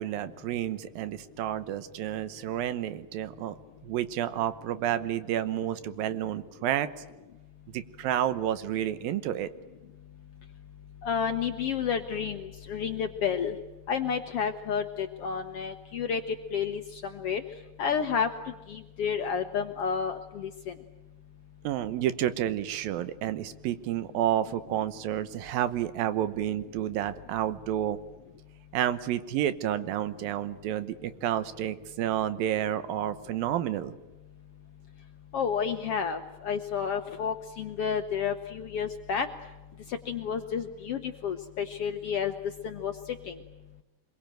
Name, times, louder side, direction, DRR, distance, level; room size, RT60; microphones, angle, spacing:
voice 1, 0.0-3.5 3.8-6.9 7.7-9.5 21.6-28.0 28.7-34.0, right 11 dB, 85° right, 13 dB, 2.9 m, -30 dB
voice 2, 11.0-13.5 13.9-17.4 17.8-18.3 18.7-20.7 35.3-39.3 39.9-42.3 42.6-42.9 43.3-43.4, left 7 dB, 70° left, 8 dB, 1.4 m, -30 dB
25.0 x 22.5 x 9.1 m, 1.1 s
omnidirectional pair, 4.1 m